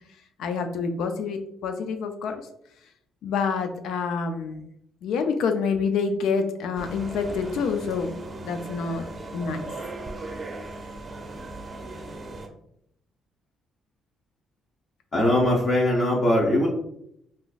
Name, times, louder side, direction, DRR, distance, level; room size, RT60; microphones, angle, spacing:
voice 1, 0.4-2.4 3.2-4.7 5.0-9.0 9.3-9.6, left 5 dB, 85° left, 6 dB, 0.3 m, -27 dB
sound 1, 6.8-12.5, right 2 dB, 35° right, 0.5 m, -38 dB
voice 2, 15.1-16.7, left 1 dB, 40° left, -3 dB, 0.7 m, -21 dB
3.7 x 2.5 x 2.3 m, 0.74 s
cardioid pair, 95°, 0 cm